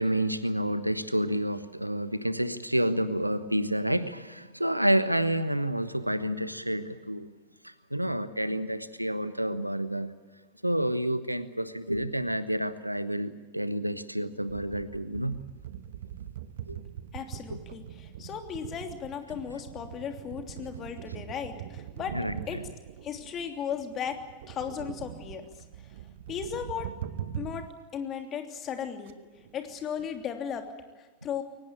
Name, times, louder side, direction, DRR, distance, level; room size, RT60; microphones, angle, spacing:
voice 1, 0.0-7.3 7.6-10.1 10.6-15.4 16.7-16.8 17.5-17.6 22.1-22.6, right 1 dB, 90° right, 13 dB, 1.2 m, -29 dB
sound 1, 14.5-27.7 28.2-28.3 28.5-28.7 29.1-29.2 29.4-30.7, right 10 dB, 55° right, 1.1 m, -42 dB
voice 2, 17.1-22.2 22.5-22.6 23.0-24.2 24.5-25.5 26.3-26.9 27.4-29.1 29.5-30.7 31.0-31.4, left 8 dB, 30° left, 5 dB, 3.0 m, -36 dB
23.5 x 19.0 x 8.8 m, 1.3 s
figure-of-eight pair, 90°, 0 cm